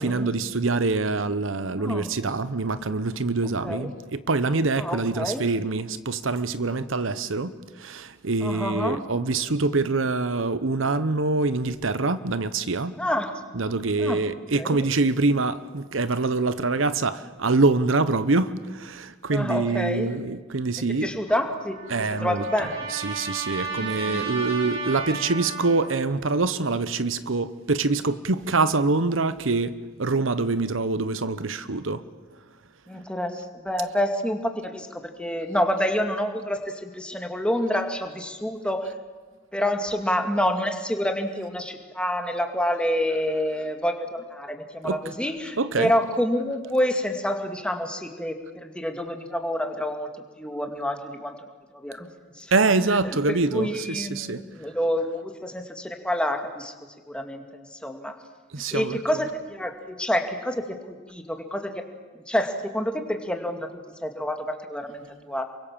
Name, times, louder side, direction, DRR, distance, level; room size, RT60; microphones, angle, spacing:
voice 1, 0.0-12.9 13.5-21.1 21.9-22.4 22.9-32.0 32.9-33.0 44.8-45.0 45.6-45.9 52.5-54.4 58.5-59.0, right 3 dB, 75° right, 0.9 m, -25 dB
voice 2, 1.8-2.1 3.6-4.0 4.8-5.5 8.4-9.1 13.0-13.4 14.0-14.2 14.5-14.8 19.3-20.1 20.9-21.8 22.1-22.9 23.8-24.3 32.9-38.9 39.5-50.1 50.4-51.3 51.7-52.1 52.4-52.5 53.0-56.7 57.1-58.2 58.7-61.9 62.1-63.7 64.0-65.4, left 1 dB, 5° left, 2.2 m, -28 dB
Trumpet, 21.3-26.1, right 4 dB, 55° right, 7.8 m, -34 dB
27.5 x 24.0 x 7.4 m
head